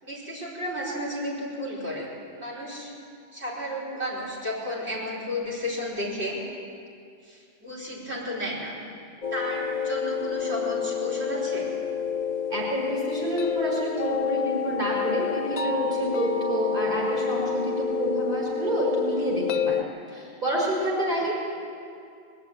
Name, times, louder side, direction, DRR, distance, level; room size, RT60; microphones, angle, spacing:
voice 1, 0.0-2.1 2.3-2.9 3.3-6.4 7.2-8.8 9.3-11.7 21.2-21.3, equal, 75° right, -5 dB, 5.5 m, -33 dB
sound 1, 9.2-19.8, left 6 dB, 50° left, 0.6 m, -28 dB
voice 2, 12.5-19.8 20.1-21.3, right 1 dB, 45° right, -5 dB, 4.8 m, -28 dB
21.5 x 13.0 x 9.4 m, 2.4 s
omnidirectional pair, 1.1 m